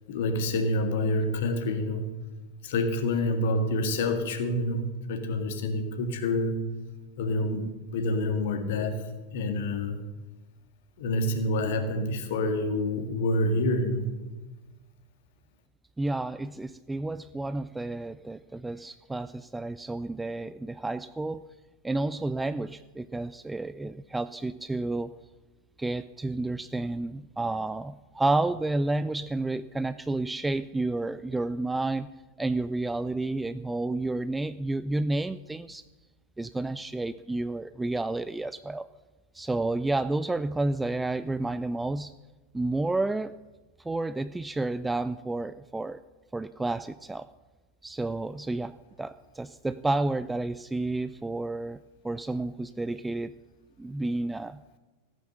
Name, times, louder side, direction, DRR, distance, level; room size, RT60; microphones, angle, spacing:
voice 1, 0.1-2.1 2.6-6.6 7.2-9.0 9.3-10.0 11.0-14.0, left 1 dB, 55° left, 6 dB, 1.9 m, -27 dB
voice 2, 16.0-21.4 21.8-25.1 25.8-32.1 32.4-35.8 36.4-38.9 39.3-42.1 42.5-43.3 43.8-46.0 46.3-47.3 47.8-51.8 52.0-53.3 53.8-54.6, right 2 dB, 10° right, 14 dB, 0.4 m, -30 dB
15.5 x 9.1 x 6.5 m, 1.2 s
figure-of-eight pair, 90°, 0 cm